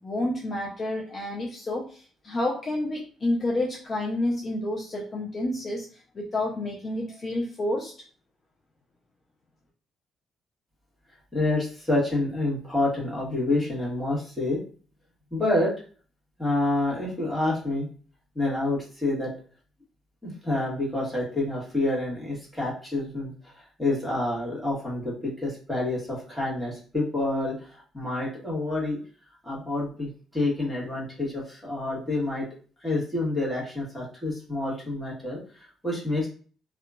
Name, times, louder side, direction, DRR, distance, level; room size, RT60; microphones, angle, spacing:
voice 1, 0.0-5.9 6.1-7.9, left 1 dB, 40° left, -3 dB, 0.5 m, -29 dB
voice 2, 11.3-14.6 15.3-15.7 16.4-17.9 18.3-19.3 20.2-29.0 29.4-32.4 32.8-36.3, left 2 dB, ahead, -7 dB, 1.4 m, -28 dB
2.8 x 2.3 x 2.3 m, 0.41 s
cardioid pair, 110°, 0 cm